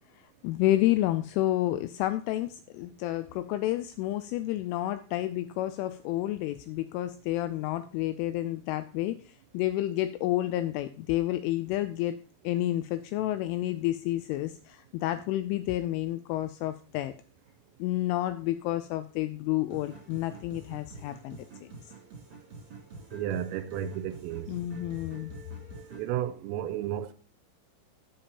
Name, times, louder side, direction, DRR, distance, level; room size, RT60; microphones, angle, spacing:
voice 1, 0.4-12.2 12.4-17.1 17.8-21.7 24.5-25.3, left 15 dB, 85° left, 2.8 m, -30 dB
sound 1, 19.7-26.1, right 4 dB, 30° right, 2.9 m, -47 dB
voice 2, 23.1-24.5 25.9-27.1, right 11 dB, 85° right, 3.3 m, -33 dB
16.5 x 7.1 x 2.9 m
omnidirectional pair, 5.9 m